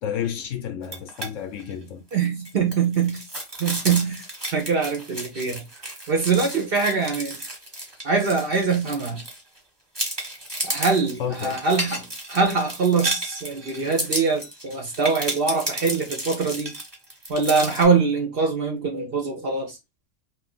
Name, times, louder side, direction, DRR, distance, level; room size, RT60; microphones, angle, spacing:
voice 1, 0.0-2.1 11.2-11.6, left 9 dB, 85° left, 0.9 m, -31 dB
sound 1, 0.8-1.3 1.6-1.7 2.1-9.6 9.9-17.8, right 1 dB, 20° right, 1.2 m, -32 dB
voice 2, 2.1-3.2 3.6-4.2 4.5-5.6 6.1-7.4 8.0-9.2 10.6-16.7 17.3-19.8, right 5 dB, 55° right, 0.9 m, -23 dB
2.6 x 2.5 x 3.7 m
omnidirectional pair, 1.3 m